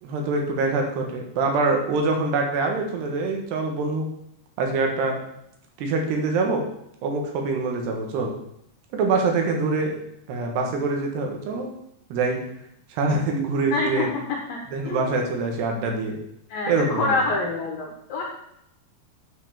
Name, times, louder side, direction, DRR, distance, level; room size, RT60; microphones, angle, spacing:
voice 1, 0.0-4.1 4.6-5.2 5.8-6.6 7.0-8.3 8.9-10.0 10.3-11.7 12.1-12.4 12.9-14.1 14.7-16.2 16.7-17.2, right 3 dB, 75° right, 2 dB, 3.6 m, -24 dB
voice 2, 13.7-14.1 14.5-14.6 14.8-15.0 16.5-18.2, left 3 dB, 65° left, 0 dB, 2.7 m, -26 dB
9.4 x 5.9 x 6.8 m, 0.76 s
omnidirectional pair, 4.9 m